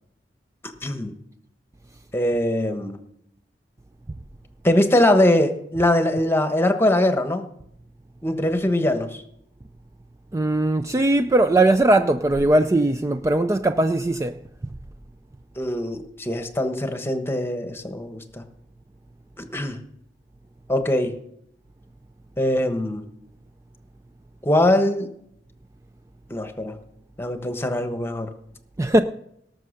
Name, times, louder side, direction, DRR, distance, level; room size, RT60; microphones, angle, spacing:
voice 1, 0.8-1.1 2.1-3.0 4.6-7.4 8.2-9.2 15.6-18.4 19.4-19.8 20.7-21.1 22.4-23.1 24.4-25.1 26.3-26.8 27.2-28.3, left 1 dB, 15° left, 1.2 m, -22 dB
voice 2, 10.3-14.3 28.8-29.0, right 2 dB, 15° right, 0.4 m, -19 dB
18.0 x 6.6 x 6.5 m
head